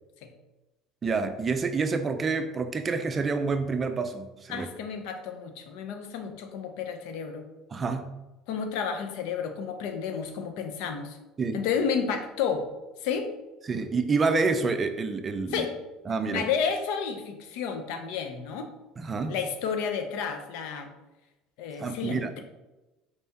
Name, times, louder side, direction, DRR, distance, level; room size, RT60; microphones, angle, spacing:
voice 1, 1.0-4.7 7.7-8.1 11.4-11.6 13.6-15.7 16.1-16.4 19.0-19.3 21.8-22.4, right 4 dB, 30° right, 8 dB, 0.4 m, -28 dB
voice 2, 4.5-7.5 8.5-11.2 11.5-12.7 13.0-13.3 15.5-15.7 16.3-18.7 19.3-20.9 21.6-22.4, left 6 dB, 75° left, 6 dB, 0.5 m, -31 dB
4.3 x 3.5 x 2.8 m, 1.1 s
supercardioid pair, 100°, 0 cm